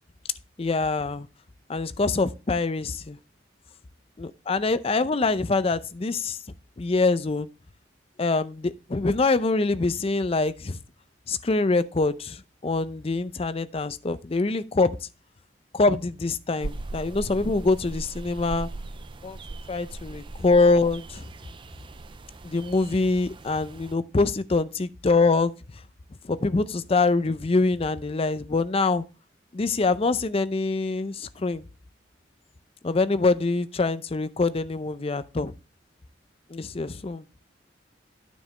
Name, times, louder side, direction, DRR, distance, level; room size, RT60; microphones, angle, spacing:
voice 1, 0.6-1.3 1.7-3.2 4.2-6.4 6.8-7.5 8.2-10.8 11.3-14.9 15.7-18.7 19.2-19.4 19.7-21.2 22.4-25.5 26.2-29.0 29.5-31.6 32.8-35.5 36.5-37.2, left 3 dB, 30° left, 0.5 m, -24 dB
sound 1, 16.6-23.9, right 2 dB, 25° right, 0.4 m, -39 dB
9.2 x 7.3 x 3.2 m
head